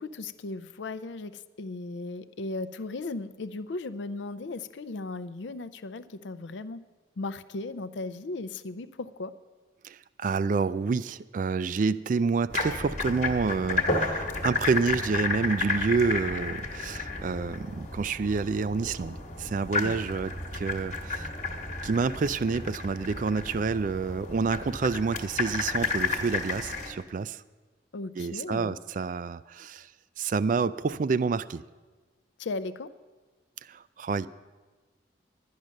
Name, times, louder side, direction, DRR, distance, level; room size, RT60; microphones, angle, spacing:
voice 1, 0.0-6.9 7.2-9.3 19.8-19.9 27.9-28.8 32.4-32.9, left 3 dB, 70° left, 14 dB, 0.5 m, -36 dB
voice 2, 9.8-21.3 21.8-27.4 28.2-29.9 30.2-31.6 33.6-34.3, right 4 dB, 45° right, 16 dB, 0.3 m, -28 dB
sound 1, 12.5-26.9, left 3 dB, 40° left, 1.2 m, -32 dB
11.0 x 10.5 x 6.4 m, 1.3 s
head